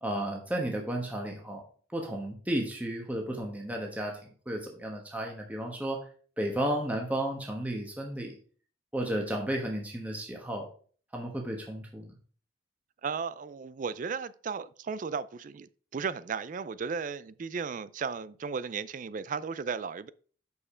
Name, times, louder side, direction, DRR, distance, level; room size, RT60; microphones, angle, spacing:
voice 1, 0.0-1.6 1.9-4.2 4.5-6.1 6.4-8.4 8.9-10.7 11.1-12.2, right 1 dB, 10° right, 1.1 m, -33 dB
voice 2, 13.0-20.1, right 5 dB, 45° right, 0.4 m, -35 dB
6.5 x 5.6 x 4.9 m
head